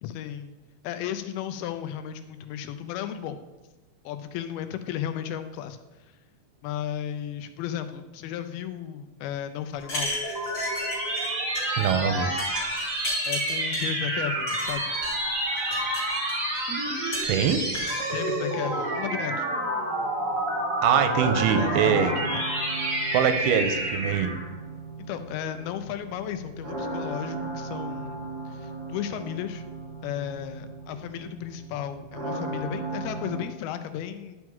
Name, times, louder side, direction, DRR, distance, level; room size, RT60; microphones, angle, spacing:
voice 1, 0.0-0.5 0.8-3.4 4.0-5.8 6.6-10.1 13.3-14.9 18.1-19.5 21.5-22.4 25.1-29.6 30.0-34.4, left 10 dB, 85° left, 9 dB, 2.5 m, -34 dB
sound 1, 9.8-11.3 11.5-11.9 12.4-13.9 14.5-15.1 15.6-16.6 17.1-18.0, left 1 dB, 30° left, 3.8 m, -34 dB
sound 2, 9.8-24.5, right 1 dB, 35° right, 1.3 m, -29 dB
voice 2, 11.8-12.3 17.2-17.7 20.8-22.1 23.1-24.4, right 8 dB, 90° right, 9 dB, 2.5 m, -23 dB
sound 3, 21.1-33.4, right 3 dB, 55° right, 3.6 m, -36 dB
11.5 x 6.1 x 3.6 m, 1.1 s
omnidirectional pair, 4.4 m